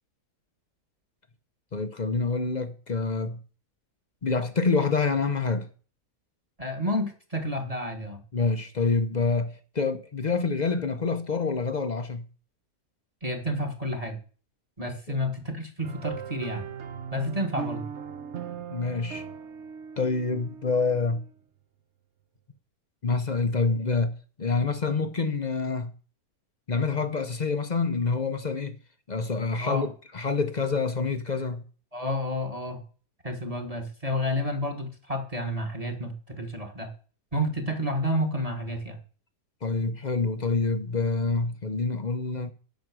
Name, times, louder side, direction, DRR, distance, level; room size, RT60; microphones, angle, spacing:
voice 1, 1.7-3.4 4.2-5.7 8.3-12.2 15.1-15.2 18.7-19.2 20.0-21.2 23.0-24.1 24.4-25.9 26.7-28.8 29.1-29.9 30.1-31.6 39.6-42.5, left 4 dB, 40° left, 0.6 m, -27 dB
voice 2, 6.6-8.2 13.2-14.2 14.8-16.6 17.1-17.8 29.6-29.9 31.9-32.8 33.2-36.9 37.3-39.0, equal, 25° right, 1.5 m, -30 dB
sound 1, 15.8-21.4, right 7 dB, 55° right, 0.9 m, -39 dB
9.4 x 6.3 x 6.1 m
omnidirectional pair, 1.7 m